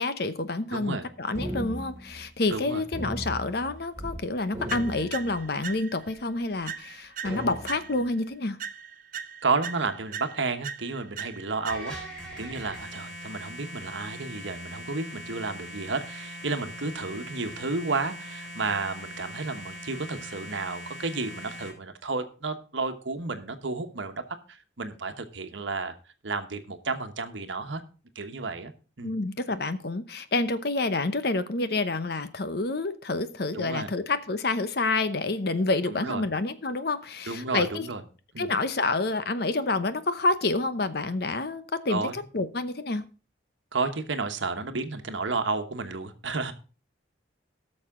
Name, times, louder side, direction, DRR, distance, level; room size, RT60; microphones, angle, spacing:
voice 1, 0.0-8.6 29.0-37.8 38.4-43.0, left 3 dB, 55° left, 12 dB, 0.8 m, -28 dB
voice 2, 0.7-1.1 2.5-2.8 9.4-12.0 12.4-24.2 24.5-25.9 26.2-27.8 28.1-28.7 29.0-29.1 33.5-33.9 35.9-36.3 37.3-38.0 38.3-38.5 41.9-42.2 43.7-46.5, right 3 dB, 80° right, 8 dB, 1.2 m, -32 dB
sound 1, 1.3-2.6 2.9-4.2 4.5-5.8 6.4-6.5 7.2-8.1, equal, 15° right, 3.1 m, -37 dB
sound 2, 4.7-6.2 6.7-8.2 8.6-12.2, right 7 dB, 45° right, 0.6 m, -40 dB
sound 3, 11.7-21.7, equal, 5° left, 3.8 m, -41 dB
17.5 x 6.5 x 3.7 m, 0.36 s
head